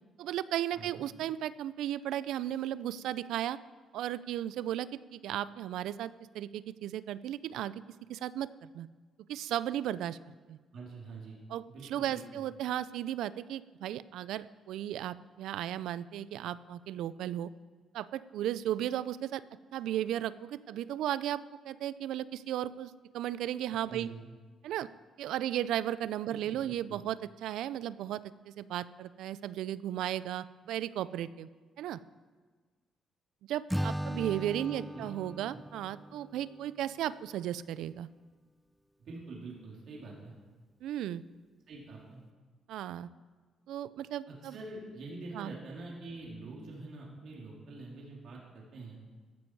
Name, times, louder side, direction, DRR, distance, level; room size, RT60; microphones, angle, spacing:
voice 1, 0.2-3.6 3.9-7.8 8.1-8.9 9.3-10.2 10.5-10.6 11.5-17.5 17.9-19.4 19.7-24.1 24.6-24.9 25.2-28.2 28.5-31.5 31.8-32.0 33.5-38.1 40.8-41.2 42.7-43.1 43.7-44.5 45.3-45.5, right 12 dB, 85° right, 17 dB, 0.4 m, -35 dB
voice 2, 0.7-1.0 10.7-11.4 11.6-12.4 23.7-24.2 26.3-27.0 34.6-35.1 35.5-35.6 39.0-40.3 41.7-42.2 44.3-49.0, right 3 dB, 65° right, -3 dB, 3.2 m, -46 dB
Acoustic guitar / Strum, 33.7-37.0, equal, ahead, 0.4 m, -38 dB
15.0 x 10.5 x 4.7 m, 1.4 s
cardioid pair, 90°, 0 cm